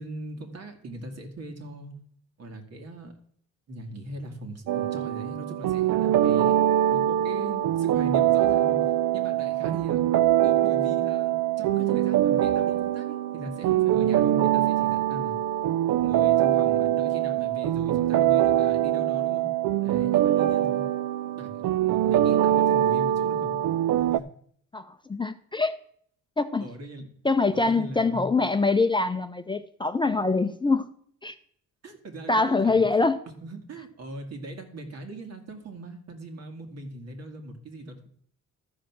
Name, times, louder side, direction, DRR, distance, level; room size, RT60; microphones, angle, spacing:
voice 1, 0.0-1.9 2.4-3.1 3.7-6.6 6.9-10.0 10.4-15.3 16.0-19.5 19.8-20.8 21.2-23.6 24.0-24.3 26.6-27.1 27.5-28.3 31.8-33.1 33.4-38.1, right 1 dB, 55° right, 2.2 m, -40 dB
sound 1, 4.7-24.2, right 12 dB, 75° right, 0.5 m, -23 dB
voice 2, 24.7-25.8 26.4-26.7 27.2-30.9 31.2-31.4 32.3-33.2, left 3 dB, 15° left, 0.5 m, -24 dB
13.0 x 5.0 x 6.0 m
cardioid pair, 90°, 30 cm